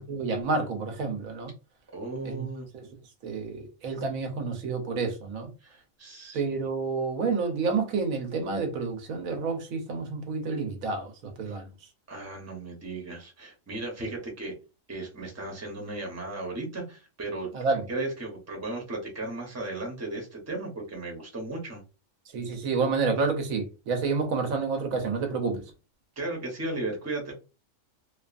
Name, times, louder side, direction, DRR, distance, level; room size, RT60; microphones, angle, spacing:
voice 1, 0.0-1.5 2.2-2.5 2.7-2.9 3.2-5.5 6.3-11.7 14.0-14.1 17.5-17.9 22.3-25.6, right 4 dB, 90° right, 1.2 m, -29 dB
voice 2, 1.9-2.7 5.6-6.5 11.5-11.6 12.1-14.5 14.9-17.5 17.9-21.8 26.2-27.3, right 2 dB, 15° right, 0.7 m, -35 dB
2.8 x 2.3 x 2.4 m
omnidirectional pair, 1.4 m